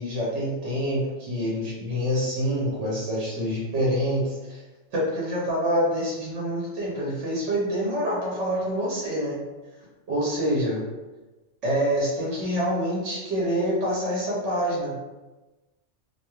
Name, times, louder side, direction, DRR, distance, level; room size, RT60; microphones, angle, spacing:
voice 1, 0.0-4.2 4.5-4.6 4.9-9.4 10.1-10.8 11.6-14.9, equal, 75° right, -5 dB, 1.1 m, -26 dB
2.6 x 2.2 x 2.9 m, 1.1 s
omnidirectional pair, 1.2 m